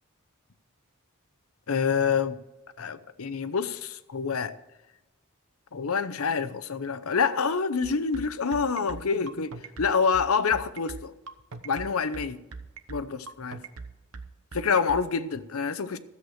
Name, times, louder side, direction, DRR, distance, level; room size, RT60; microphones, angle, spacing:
voice 1, 1.7-2.4 2.8-4.5 5.7-11.1 11.6-12.4 12.9-13.6 14.5-16.0, left 5 dB, 75° left, 0.7 m, -27 dB
sound 1, 7.8-15.0, right 4 dB, 85° right, 1.0 m, -40 dB
13.5 x 8.1 x 6.4 m
head